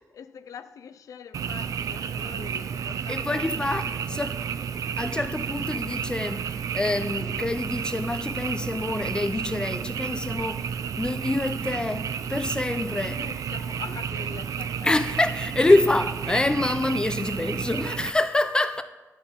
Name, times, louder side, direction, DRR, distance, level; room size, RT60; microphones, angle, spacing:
voice 1, 0.1-4.2 12.9-15.0, left 7 dB, 85° left, 0.4 m, -44 dB
Frog, 1.3-18.1, right 7 dB, 85° right, 0.4 m, -31 dB
voice 2, 3.1-3.8 4.1-4.4 5.0-10.7 11.0-13.2 14.8-18.8, left 2 dB, 15° left, 0.6 m, -26 dB
11.0 x 6.8 x 5.6 m
wide cardioid pair, 110°, 6 cm